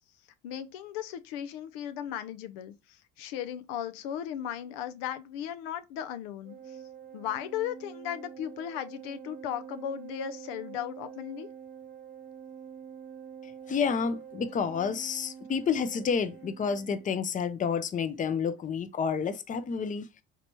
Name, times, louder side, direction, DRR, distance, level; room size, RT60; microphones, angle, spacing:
voice 1, 0.4-6.8 7.1-11.5, left 10 dB, 85° left, 0.5 m, -36 dB
Organ, 6.4-17.2, right 8 dB, 35° right, 0.7 m, -46 dB
voice 2, 13.4-20.1, left 6 dB, 25° left, 0.5 m, -30 dB
3.3 x 2.8 x 2.9 m
supercardioid pair, 80°, 30 cm